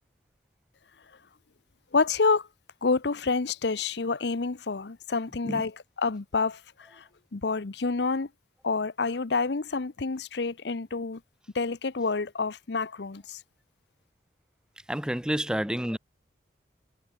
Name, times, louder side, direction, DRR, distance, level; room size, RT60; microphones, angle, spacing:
voice 1, 1.9-2.5 2.8-6.6 6.9-7.0 7.3-8.3 8.6-11.2 11.5-13.4, left 4 dB, 75° left, 0.8 m, -28 dB
voice 2, 14.9-16.0, equal, 5° right, 0.7 m, -29 dB
head